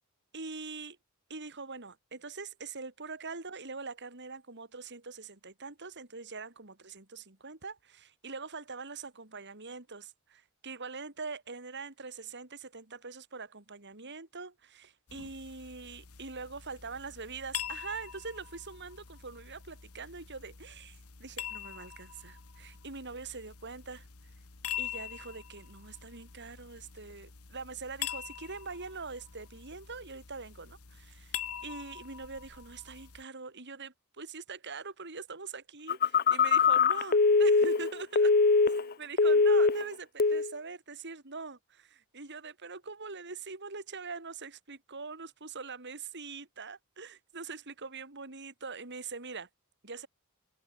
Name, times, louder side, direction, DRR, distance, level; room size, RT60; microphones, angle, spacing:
voice 1, 0.3-1.0 1.3-24.1 24.8-38.3 38.8-49.5 49.8-50.1, right 4 dB, 55° right, 3.2 m, -43 dB
sound 1, 15.1-33.2, left 10 dB, 80° left, 1.9 m, -44 dB
Telephone, 35.9-38.9 39.2-39.9 40.2-40.5, left 4 dB, 45° left, 0.9 m, -23 dB
head